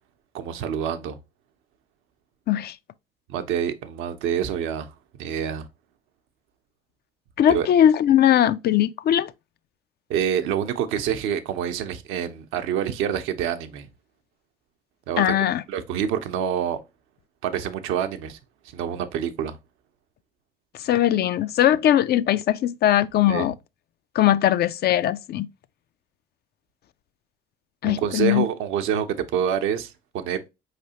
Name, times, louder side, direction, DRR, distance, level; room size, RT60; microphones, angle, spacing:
voice 1, 0.3-1.2 3.3-4.9 5.2-5.7 7.5-7.7 10.1-13.9 15.1-15.2 15.7-16.8 17.4-18.4 18.7-19.6 23.3-23.5 27.8-30.4, right 9 dB, 70° right, 0.7 m, -27 dB
voice 2, 7.4-9.3 15.2-15.6 20.8-23.5 24.1-25.5 27.8-28.4, left 11 dB, 50° left, 0.4 m, -20 dB
4.7 x 3.3 x 2.8 m
hypercardioid pair, 55°, 21 cm